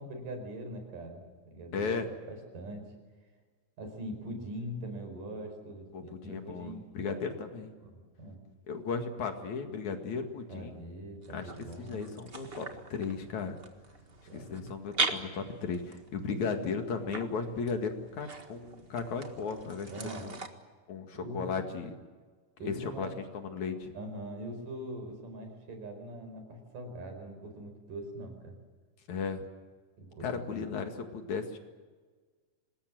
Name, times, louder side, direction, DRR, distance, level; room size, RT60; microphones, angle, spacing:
voice 1, 0.0-2.9 3.8-7.2 7.8-8.4 10.5-12.1 14.2-14.6 16.3-16.6 19.9-20.3 21.1-21.6 22.6-23.1 23.9-28.5 30.0-30.6, right 1 dB, 80° right, 5 dB, 6.6 m, -42 dB
voice 2, 1.7-2.1 5.9-7.7 8.7-10.7 11.3-11.5 11.8-13.6 14.3-19.9 20.2-20.4 20.9-21.9 22.6-23.9 29.1-29.4 30.2-31.6, left 5 dB, 65° left, 5 dB, 3.3 m, -35 dB
sound 1, 11.2-20.5, right 4 dB, 35° right, 1.0 m, -40 dB
25.5 x 20.5 x 7.6 m, 1.5 s
omnidirectional pair, 3.7 m